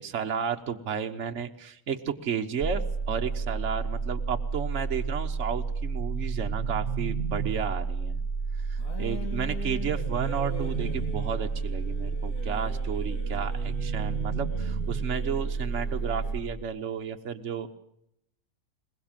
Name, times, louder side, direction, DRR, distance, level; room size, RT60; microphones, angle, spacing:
voice 1, 0.0-8.2 8.7-17.8, right 7 dB, 55° right, 5 dB, 1.5 m, -33 dB
sound 1, 2.6-16.4, right 4 dB, 15° left, 2.4 m, -31 dB
sound 2, 6.0-8.0 9.6-11.5 13.3-15.3, right 10 dB, 70° right, 1.5 m, -36 dB
sound 3, 8.8-16.5, left 3 dB, 65° left, 3.5 m, -43 dB
22.0 x 20.5 x 7.4 m, 0.77 s
omnidirectional pair, 1.5 m